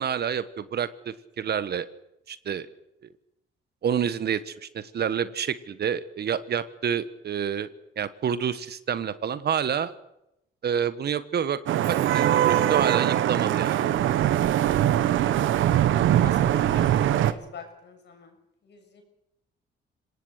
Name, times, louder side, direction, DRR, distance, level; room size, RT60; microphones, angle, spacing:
voice 1, 0.0-1.9 2.3-2.7 3.8-7.7 8.0-9.9 10.6-11.6 11.9-13.8, right 8 dB, 55° right, 14 dB, 1.3 m, -28 dB
Vehicle horn car horn honking / Traffic noise roadway noise, 11.7-17.3, right 11 dB, 80° right, 1.2 m, -22 dB
voice 2, 15.0-15.4 16.2-18.3 18.6-19.0, left 5 dB, 60° left, 4 dB, 7.0 m, -45 dB
26.0 x 18.5 x 6.7 m, 0.84 s
cardioid pair, 90°, 20 cm